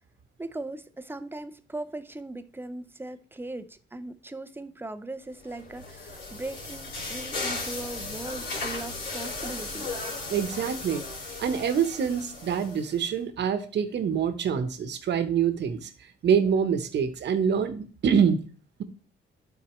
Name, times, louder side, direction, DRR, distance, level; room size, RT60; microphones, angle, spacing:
voice 1, 0.4-10.1, right 2 dB, 10° right, 0.5 m, -39 dB
sound 1, 5.5-13.0, left 3 dB, 75° left, 3.2 m, -36 dB
voice 2, 10.3-11.0 11.4-15.9 16.2-18.4, right 7 dB, 60° right, 1.0 m, -25 dB
11.5 x 4.3 x 3.1 m
cardioid pair, 90°, 20 cm